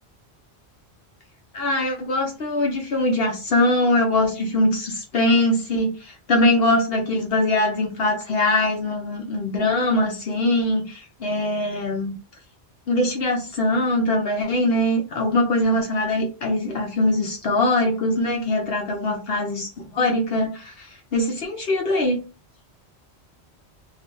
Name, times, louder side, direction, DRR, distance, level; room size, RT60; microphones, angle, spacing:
voice 1, 1.5-12.1 12.9-22.2, left 1 dB, 65° left, 1 dB, 0.9 m, -22 dB
3.2 x 2.5 x 3.7 m, 0.30 s
omnidirectional pair, 1.1 m